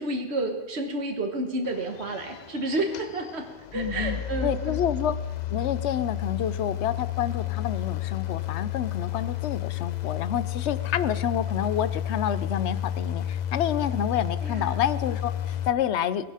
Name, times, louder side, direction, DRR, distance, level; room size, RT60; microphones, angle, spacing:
voice 1, 0.0-4.8 14.4-14.8, right 2 dB, 75° right, 4 dB, 1.6 m, -30 dB
sound 1, 1.6-15.7, left 10 dB, 50° left, 0.6 m, -31 dB
voice 2, 3.7-5.2 5.5-16.3, left 9 dB, 85° left, 14 dB, 0.9 m, -28 dB
18.5 x 11.0 x 5.0 m, 1.1 s
omnidirectional pair, 1.1 m